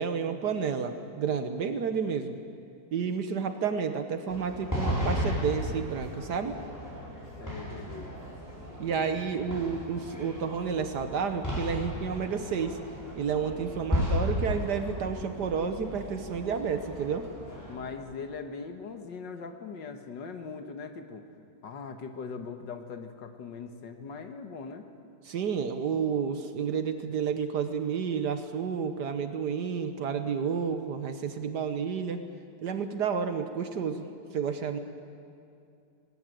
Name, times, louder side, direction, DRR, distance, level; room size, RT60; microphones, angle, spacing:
voice 1, 0.0-2.4 2.9-6.6 8.8-12.8 13.1-17.3 25.3-32.2 32.6-34.8, right 6 dB, 65° right, 9 dB, 1.5 m, -31 dB
sound 1, 4.3-17.8, left 1 dB, 10° left, 6.2 m, -35 dB
voice 2, 7.4-8.2 17.7-21.3 21.6-24.9, left 5 dB, 75° left, 7 dB, 2.0 m, -40 dB
19.0 x 19.0 x 9.1 m, 2.6 s
omnidirectional pair, 2.0 m